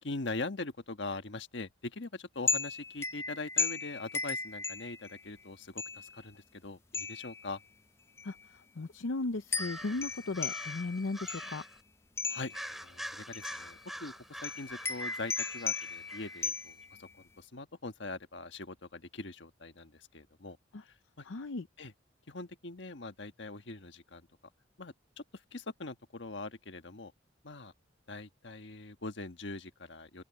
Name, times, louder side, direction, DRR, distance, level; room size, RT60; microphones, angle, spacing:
voice 1, 0.0-7.6 12.2-14.1 14.4-20.6 20.8-21.2 21.8-21.9 22.3-24.3 24.8-27.1 27.4-27.7 28.1-30.2, left 3 dB, 70° left, 1.4 m, -42 dB
sound 1, 2.5-5.3 5.8-6.2 6.9-7.5 8.2-8.3 9.5-11.7 12.2-12.7 13.3-13.7 14.4-17.0, left 4 dB, 15° left, 0.4 m, -36 dB
voice 2, 8.8-11.6 21.3-21.6, left 3 dB, 90° left, 0.7 m, -36 dB
sound 2, 9.5-11.8 12.5-16.5, equal, ahead, 4.2 m, -46 dB
open air
head